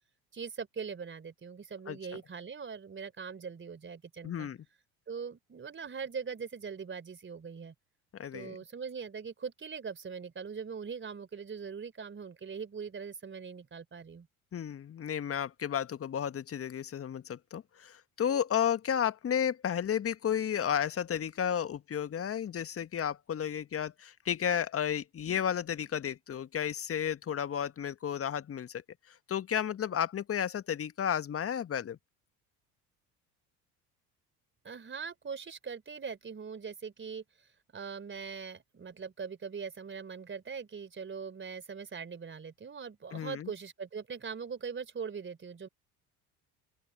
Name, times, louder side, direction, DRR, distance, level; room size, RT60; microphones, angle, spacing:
voice 1, 0.3-4.5 5.1-7.7 8.3-14.3 34.6-37.2 37.7-45.7, right 6 dB, 25° right, 3.8 m, -41 dB
voice 2, 4.2-4.6 8.1-8.6 14.5-28.8 29.3-32.0 43.1-43.5, left 9 dB, 30° left, 1.7 m, -32 dB
open air
figure-of-eight pair, 60°, 45 cm